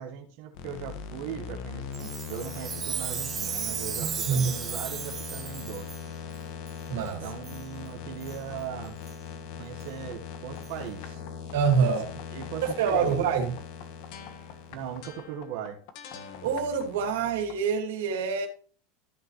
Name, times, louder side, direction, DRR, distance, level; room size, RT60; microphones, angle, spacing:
voice 1, 0.0-5.9 7.2-9.0 9.6-11.2 11.6-11.9 12.3-13.1 13.4-13.5 14.7-15.8, right 8 dB, 55° right, 1.4 m, -39 dB
sound 1, 0.5-17.7, left 7 dB, 55° left, 1.5 m, -41 dB
Chime, 1.9-6.0 6.7-6.8 7.4-7.6 8.2-8.4 9.1-9.2 9.8-9.9 10.6-10.7, right 8 dB, 25° right, 0.8 m, -35 dB
voice 2, 4.0-4.5 6.9-7.2 11.5-12.1 12.6-13.5 16.4-18.5, right 6 dB, 90° right, 2.5 m, -26 dB
14.0 x 5.8 x 3.1 m
supercardioid pair, 150°, 0 cm